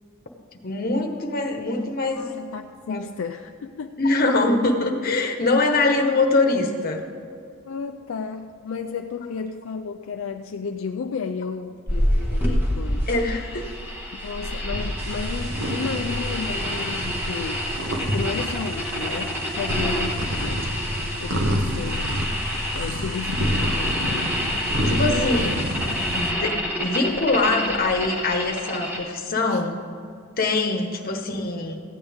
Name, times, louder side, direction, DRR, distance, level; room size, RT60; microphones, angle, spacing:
voice 1, 0.6-2.2 2.9-3.0 4.0-7.0 13.1-13.7 24.9-25.6 26.1-29.7 30.4-31.8, left 2 dB, 45° left, 3 dB, 1.1 m, -23 dB
voice 2, 2.1-4.0 5.7-5.8 7.6-13.1 14.1-20.7 21.2-22.3 22.7-24.3 24.8-25.5 29.5-29.6 31.0-31.1, left 5 dB, 70° left, 5 dB, 0.4 m, -33 dB
sound 1, 11.9-29.0, equal, 10° right, 1.6 m, -27 dB
sound 2, 15.0-26.3, equal, 65° right, 1.2 m, -29 dB
15.0 x 9.5 x 3.5 m, 2.4 s
head